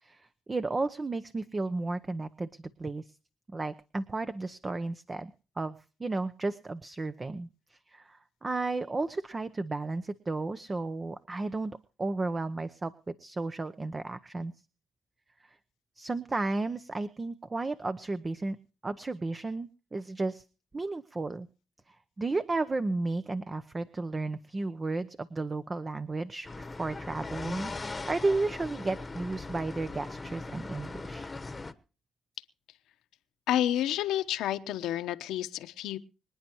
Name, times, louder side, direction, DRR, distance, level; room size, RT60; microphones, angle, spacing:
voice 1, 0.0-3.1 3.5-5.3 5.6-14.5 16.0-18.6 18.8-20.4 20.7-21.5 21.9-27.7 28.1-31.3 34.7-34.8, right 3 dB, 25° right, 12 dB, 0.8 m, -33 dB
sound 1, 26.4-31.7, left 3 dB, 25° left, 1.1 m, -39 dB
voice 2, 33.5-36.0, left 12 dB, 85° left, 12 dB, 0.9 m, -30 dB
25.5 x 9.8 x 3.0 m, 0.34 s
cardioid pair, 90°, 0 cm